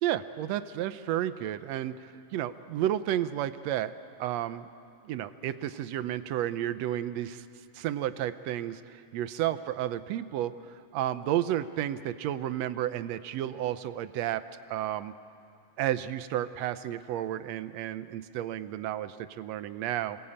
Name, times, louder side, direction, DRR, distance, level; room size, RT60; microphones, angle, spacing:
voice 1, 0.0-3.9 4.2-4.7 5.1-7.4 7.8-15.1 15.8-20.2, right 12 dB, 75° right, 13 dB, 1.8 m, -32 dB
26.5 x 20.5 x 8.8 m, 2.5 s
omnidirectional pair, 3.3 m